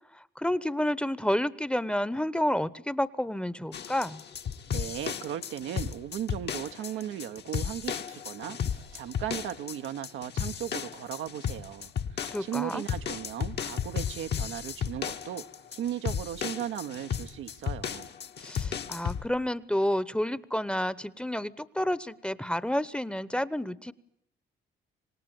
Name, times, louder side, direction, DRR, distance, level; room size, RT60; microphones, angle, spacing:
voice 1, 0.1-4.2 12.2-12.8 18.4-23.9, left 1 dB, 5° left, 1.0 m, -30 dB
sound 1, 3.7-19.3, left 8 dB, 60° left, 1.5 m, -34 dB
voice 2, 4.7-15.4 15.7-18.1, right 11 dB, 80° right, 1.1 m, -37 dB
26.0 x 19.0 x 9.1 m
cardioid pair, 90°, 20 cm